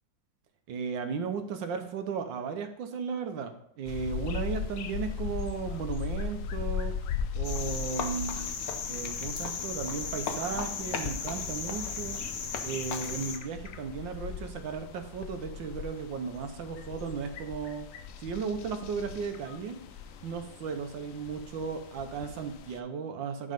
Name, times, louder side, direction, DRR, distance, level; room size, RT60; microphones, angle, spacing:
voice 1, 0.7-6.9 7.3-8.5 8.9-12.2 12.6-17.9 18.2-19.8 20.2-23.5, right 6 dB, 80° right, 7 dB, 1.5 m, -35 dB
sound 1, 3.8-22.8, left 6 dB, 85° left, 0.7 m, -39 dB
Cricket, 7.4-13.4, left 6 dB, 60° left, 1.2 m, -35 dB
10.5 x 3.7 x 5.1 m, 0.70 s
omnidirectional pair, 2.0 m